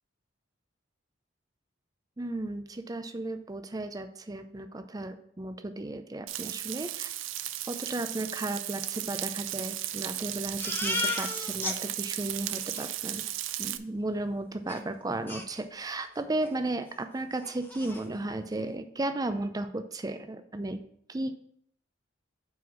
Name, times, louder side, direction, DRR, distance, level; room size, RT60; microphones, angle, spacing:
voice 1, 2.2-7.1 7.7-13.2 13.6-20.8 21.1-21.4, right 2 dB, 20° right, 9 dB, 0.5 m, -34 dB
Frying (food), 6.3-13.8, right 13 dB, 80° right, 0.4 m, -35 dB
Crying sobbing, 10.6-11.8 12.2-12.3 12.5-12.9 14.7-14.8 15.3-16.1 16.4-16.6 16.9-17.0 17.4-18.0, left 3 dB, 10° left, 0.8 m, -35 dB
5.5 x 4.7 x 6.2 m, 0.68 s
head